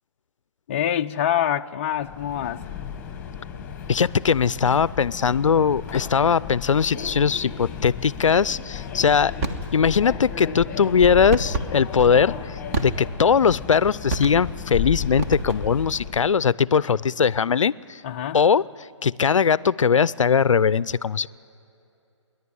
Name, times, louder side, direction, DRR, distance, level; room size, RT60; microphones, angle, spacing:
voice 1, 0.7-2.7 16.8-17.0 18.0-18.5, left 10 dB, 25° left, 0.4 m, -26 dB
Subway metro underground, 2.0-16.3, left 7 dB, 10° left, 1.4 m, -34 dB
voice 2, 3.9-9.3 9.7-18.0 18.3-18.6 19.0-21.3, left 6 dB, 75° left, 0.5 m, -20 dB
sound 1, 9.4-9.7 11.3-11.7 12.7-13.2 14.1-14.6 15.2-15.8, right 2 dB, 30° right, 1.4 m, -28 dB
28.5 x 10.5 x 9.8 m
hypercardioid pair, 150°, 16 cm